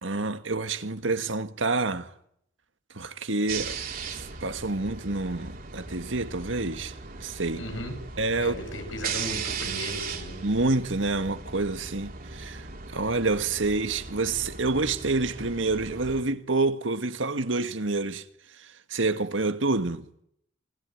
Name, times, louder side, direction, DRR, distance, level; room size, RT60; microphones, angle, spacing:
voice 1, 0.0-2.1 2.9-3.8 4.1-7.6 8.2-8.5 10.4-12.6 12.9-18.2 18.9-20.1, right 3 dB, 80° right, 1.8 m, -28 dB
sound 1, 3.5-16.2, right 5 dB, 50° right, 3.4 m, -38 dB
voice 2, 7.5-8.1 8.4-10.5, left 1 dB, 85° left, 7.1 m, -36 dB
28.0 x 21.5 x 9.4 m
head